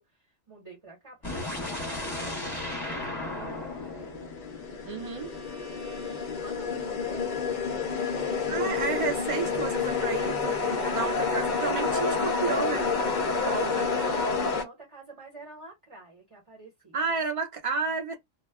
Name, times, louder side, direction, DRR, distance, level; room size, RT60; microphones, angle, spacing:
voice 1, 0.0-4.1 6.4-7.4 8.0-8.7 10.7-11.2 13.3-17.0, right 3 dB, 30° right, 1.0 m, -46 dB
sound 1, 1.2-5.2, left 2 dB, 20° left, 1.0 m, -35 dB
sound 2, 3.1-14.6, left 4 dB, 55° left, 0.6 m, -29 dB
Bowed string instrument, 4.0-7.1, right 4 dB, 5° right, 0.6 m, -52 dB
voice 2, 4.8-5.3 8.5-12.9 13.4-13.7 14.4-14.6 16.9-18.2, right 4 dB, 60° right, 0.3 m, -31 dB
2.2 x 2.1 x 3.4 m
omnidirectional pair, 1.2 m